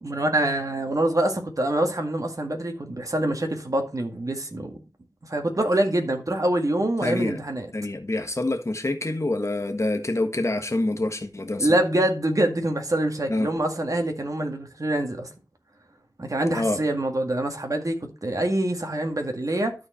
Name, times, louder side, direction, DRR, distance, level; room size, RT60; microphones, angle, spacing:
voice 1, 0.0-4.8 5.2-7.7 11.6-15.3 16.2-19.8, right 1 dB, 50° right, 1.8 m, -25 dB
voice 2, 7.0-7.4 7.7-11.7 13.3-13.5 16.5-16.8, left 2 dB, 40° left, 1.5 m, -26 dB
12.5 x 4.5 x 4.4 m
wide cardioid pair, 55°, 7 cm